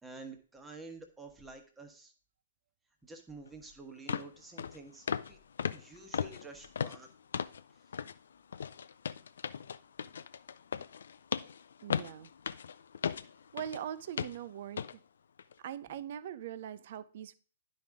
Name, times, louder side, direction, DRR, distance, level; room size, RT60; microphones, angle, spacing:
voice 1, 0.0-2.1 3.0-5.4 5.7-7.1, right 3 dB, 10° right, 1.2 m, -49 dB
sound 1, 3.5-3.6 4.1-4.3 4.6-4.8 5.1-5.3 5.6-7.6 7.9-8.2 8.5-13.8 14.2-14.4 14.8-14.9 15.4-15.5, left 7 dB, 70° left, 0.4 m, -37 dB
voice 2, 11.8-12.3 13.5-15.0 15.6-17.3, right 10 dB, 55° right, 0.4 m, -41 dB
10.5 x 5.3 x 3.6 m
hypercardioid pair, 125°, 0 cm